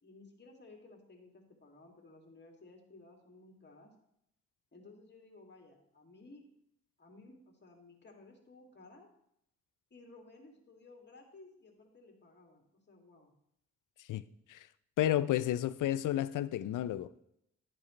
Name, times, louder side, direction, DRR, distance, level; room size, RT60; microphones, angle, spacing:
voice 1, 0.0-3.9 4.7-6.4 7.0-9.1 9.9-13.3, left 2 dB, 35° left, 2.5 m, -57 dB
voice 2, 15.0-17.2, left 12 dB, 80° left, 0.5 m, -31 dB
11.0 x 8.9 x 3.2 m
cardioid pair, 70°, 31 cm